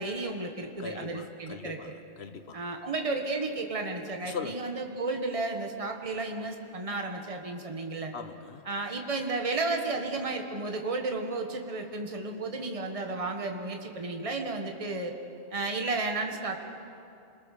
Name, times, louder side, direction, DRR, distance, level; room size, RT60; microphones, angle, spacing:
voice 1, 0.0-1.8 2.5-8.1 8.7-15.1 15.5-16.6, right 3 dB, 25° right, 3 dB, 1.6 m, -33 dB
voice 2, 0.8-2.7 4.2-4.6 8.1-8.6, left 6 dB, 60° left, 9 dB, 1.4 m, -40 dB
27.0 x 22.0 x 6.7 m, 2.7 s
omnidirectional pair, 1.3 m